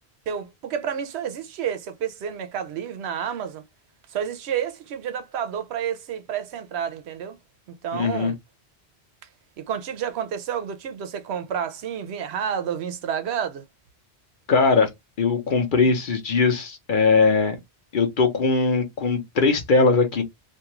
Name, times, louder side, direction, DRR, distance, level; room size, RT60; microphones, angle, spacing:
voice 1, 0.3-3.6 4.1-7.4 7.8-8.4 9.6-13.6, right 8 dB, 85° right, 0.9 m, -30 dB
voice 2, 7.9-8.3 14.5-14.9 15.2-17.6 17.9-20.2, left 4 dB, 55° left, 0.8 m, -20 dB
2.6 x 2.4 x 2.9 m
omnidirectional pair, 1.1 m